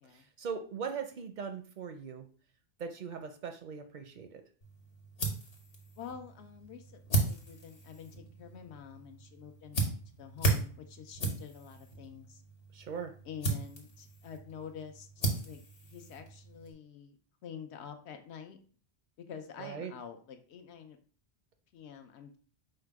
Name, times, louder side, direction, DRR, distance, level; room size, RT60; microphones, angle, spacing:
voice 1, 0.1-2.3 2.8-4.4 12.7-13.1 19.6-19.9, right 6 dB, 60° right, 6 dB, 0.5 m, -40 dB
sound 1, 4.6-16.7, right 2 dB, 55° left, 1.3 m, -36 dB
voice 2, 6.0-9.9 10.2-12.4 13.2-15.1 15.4-15.6 15.9-18.6 19.3-21.0 21.7-22.4, left 7 dB, 80° left, 6 dB, 0.9 m, -47 dB
4.8 x 2.2 x 4.6 m, 0.42 s
omnidirectional pair, 1.1 m